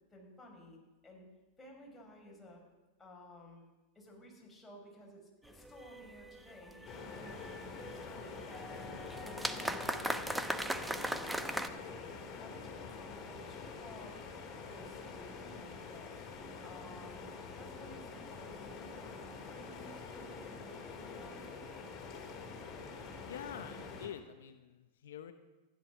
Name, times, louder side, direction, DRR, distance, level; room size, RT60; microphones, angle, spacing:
voice 1, 0.1-1.2 1.6-2.6 3.0-3.7 3.9-7.4 7.7-10.4 10.8-11.4 11.8-12.1 12.4-14.2 14.6-16.1 16.6-19.2 19.5-21.5, left 1 dB, 10° left, -2 dB, 5.9 m, -55 dB
sound 1, 5.5-11.7, right 1 dB, 5° right, 0.9 m, -40 dB
sound 2, 6.8-24.1, left 4 dB, 35° left, 4.4 m, -46 dB
voice 2, 22.9-25.3, left 9 dB, 75° left, 8 dB, 1.0 m, -47 dB
15.0 x 11.0 x 6.1 m, 1.2 s
hypercardioid pair, 115°, 0 cm